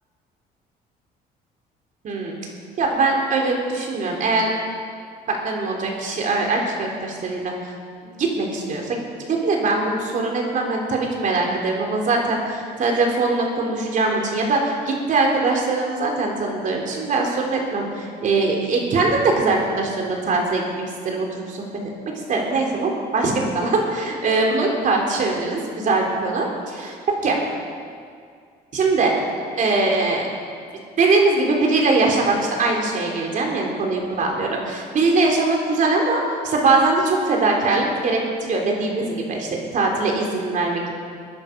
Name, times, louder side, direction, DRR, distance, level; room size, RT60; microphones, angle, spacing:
voice 1, 2.0-2.4 2.8-4.5 5.3-7.5 8.0-9.0 9.3-21.6 22.3-27.4 28.7-29.1 29.6-30.2 31.0-40.9, right 3 dB, 50° right, 0 dB, 3.6 m, -22 dB
22.0 x 10.5 x 5.3 m, 2.2 s
cardioid pair, 110°, 17 cm